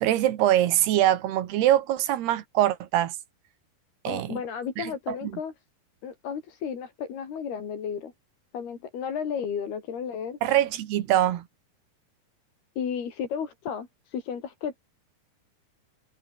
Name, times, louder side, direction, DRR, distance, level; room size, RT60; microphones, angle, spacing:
voice 1, 0.0-3.2 4.1-4.4 4.8-5.3 10.4-11.5, right 12 dB, 85° right, 3.6 m, -23 dB
voice 2, 4.1-5.5 6.0-8.1 8.5-10.4 12.8-14.8, left 7 dB, 75° left, 5.5 m, -33 dB
omnidirectional pair, 4.5 m